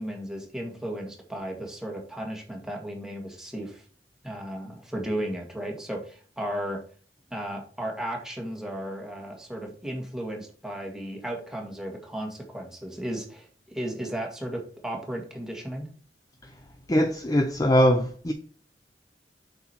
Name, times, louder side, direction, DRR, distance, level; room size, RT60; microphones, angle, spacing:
voice 1, 0.0-3.8 4.2-6.8 7.3-15.9, right 1 dB, 5° right, 2.0 m, -35 dB
voice 2, 16.9-18.3, equal, 20° left, 0.6 m, -21 dB
7.8 x 6.1 x 4.4 m
head